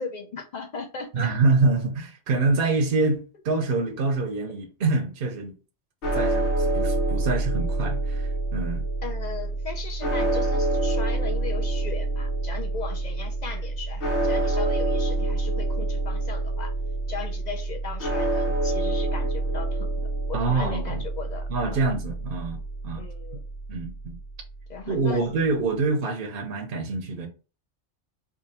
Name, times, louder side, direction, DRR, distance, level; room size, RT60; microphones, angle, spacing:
voice 1, 0.0-1.3 9.0-16.7 17.1-21.8 23.0-23.4 24.7-25.5, left 5 dB, 55° left, 0.5 m, -38 dB
voice 2, 1.1-5.5 6.1-8.8 20.3-21.0 21.5-23.0 23.7-24.1 24.9-27.3, right 3 dB, 60° right, 0.8 m, -26 dB
sound 1, 6.0-24.3, right 2 dB, 75° left, 1.2 m, -27 dB
3.6 x 2.3 x 4.0 m
omnidirectional pair, 1.2 m